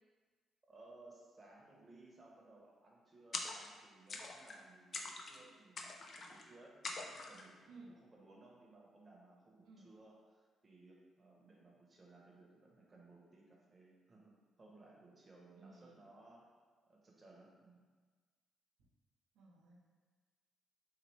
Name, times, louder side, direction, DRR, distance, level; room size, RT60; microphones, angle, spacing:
voice 1, 0.6-16.5 16.9-17.8, right 2 dB, 25° right, -3 dB, 0.9 m, -61 dB
sound 1, 3.3-3.8 4.1-4.6 4.9-5.4 5.8-6.4 6.8-7.5, left 3 dB, 50° left, 0.4 m, -44 dB
voice 2, 15.6-16.0 19.3-19.9, right 3 dB, 90° right, -4 dB, 0.7 m, -57 dB
4.0 x 2.7 x 3.2 m, 1.4 s
cardioid pair, 90°, 0 cm